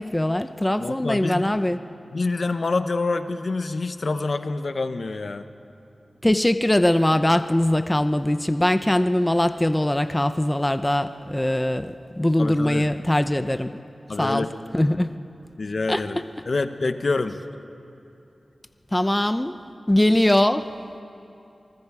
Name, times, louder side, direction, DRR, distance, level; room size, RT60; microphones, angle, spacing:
voice 1, 0.0-1.8 6.2-13.8 14.2-14.4 14.7-15.1 15.9-16.0 18.9-19.6 19.9-20.7, left 1 dB, 15° left, 10 dB, 0.7 m, -21 dB
voice 2, 0.8-1.5 2.1-5.5 12.4-12.8 14.1-14.5 14.9-15.0 15.6-16.2 16.5-17.4, left 3 dB, 65° left, 9 dB, 1.0 m, -26 dB
26.5 x 20.0 x 4.9 m, 2.8 s
cardioid pair, 45°, 0 cm